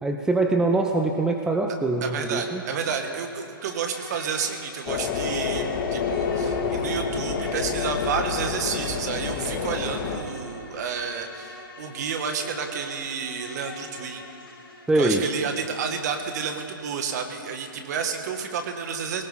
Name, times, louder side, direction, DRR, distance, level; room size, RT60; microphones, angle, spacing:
voice 1, 0.0-2.6 14.9-15.2, right 2 dB, 5° right, 3 dB, 0.7 m, -23 dB
voice 2, 2.0-5.7 5.9-14.2 14.9-19.2, right 6 dB, 45° right, 5 dB, 1.8 m, -30 dB
Insect, 3.5-14.9, left 3 dB, 85° left, 4.4 m, -44 dB
sound 1, 4.9-10.2, left 5 dB, 35° left, 1.8 m, -28 dB
21.0 x 18.5 x 3.7 m, 2.6 s
hypercardioid pair, 135°, 12 cm